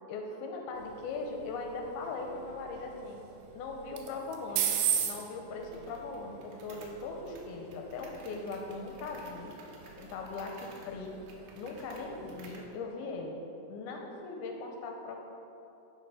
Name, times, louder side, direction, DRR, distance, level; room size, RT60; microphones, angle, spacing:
voice 1, 0.1-3.2 3.5-4.8 5.0-6.4 6.6-9.5 10.0-11.1 11.6-13.4 13.7-15.2, left 3 dB, 80° left, 2 dB, 2.4 m, -39 dB
sound 1, 0.8-12.7, right 9 dB, 90° right, 2.8 m, -39 dB
sound 2, 5.6-12.7, right 3 dB, 70° right, 2.1 m, -56 dB
12.0 x 4.6 x 4.9 m, 2.9 s
omnidirectional pair, 4.8 m